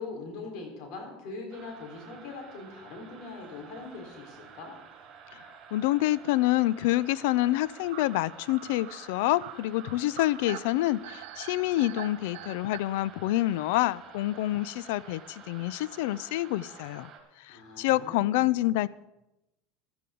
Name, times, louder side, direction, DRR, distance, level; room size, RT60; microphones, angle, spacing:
voice 1, 0.0-4.7 17.5-18.6, left 3 dB, 60° left, 2 dB, 4.1 m, -42 dB
sound 1, 1.5-17.2, right 6 dB, 45° right, 4.3 m, -50 dB
sound 2, 3.6-3.9 4.2-4.3 4.5-4.6 5.6-5.8 7.9-12.8, right 15 dB, 85° right, 0.7 m, -44 dB
voice 2, 5.7-17.1 17.4-18.9, left 16 dB, 80° left, 21 dB, 0.4 m, -27 dB
15.0 x 13.0 x 3.8 m, 0.94 s
supercardioid pair, 125°, 0 cm